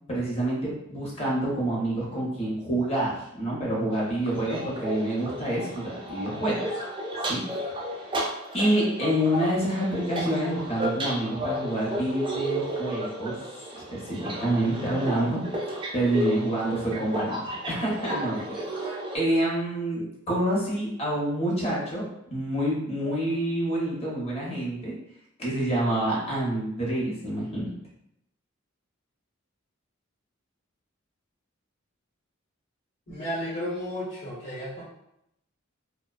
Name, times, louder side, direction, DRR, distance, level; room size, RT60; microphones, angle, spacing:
voice 1, 0.1-6.6 7.2-7.4 7.9-8.1 8.5-15.4 15.7-18.4 18.7-24.9 25.4-27.7, right 1 dB, 30° left, -5 dB, 0.8 m, -27 dB
sound 1, 3.9-19.2, right 1 dB, 25° right, 0.3 m, -33 dB
voice 2, 33.1-34.8, equal, 55° left, -12 dB, 1.0 m, -33 dB
2.4 x 2.2 x 2.3 m, 0.80 s
head